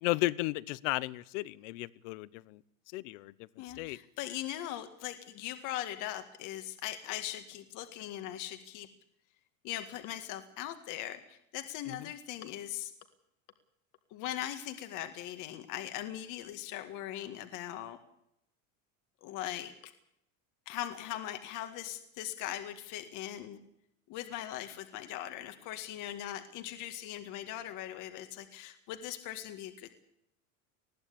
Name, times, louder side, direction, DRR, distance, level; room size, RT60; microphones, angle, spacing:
voice 1, 0.0-2.6 2.9-3.3 3.8-4.0, left 18 dB, 70° left, 20 dB, 1.0 m, -34 dB
voice 2, 3.6-8.9 9.6-12.9 14.1-18.0 19.2-19.9 20.7-23.6 24.1-29.9, left 12 dB, 50° left, 8 dB, 1.9 m, -40 dB
20.5 x 15.0 x 8.6 m, 0.77 s
supercardioid pair, 140°, 39 cm